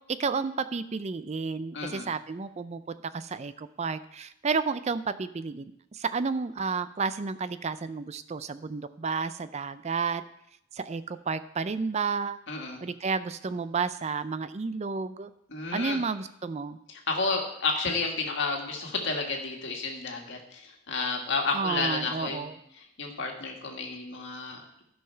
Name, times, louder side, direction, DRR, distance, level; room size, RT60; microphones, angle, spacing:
voice 1, 0.1-10.2 10.7-12.4 12.8-15.3 15.7-16.8 21.5-22.6, right 5 dB, 30° right, 13 dB, 0.4 m, -31 dB
voice 2, 1.7-2.1 12.5-12.8 15.5-16.0 16.9-22.5 22.8-24.8, left 4 dB, 55° left, 1 dB, 1.7 m, -31 dB
12.5 x 5.6 x 5.6 m, 0.76 s
head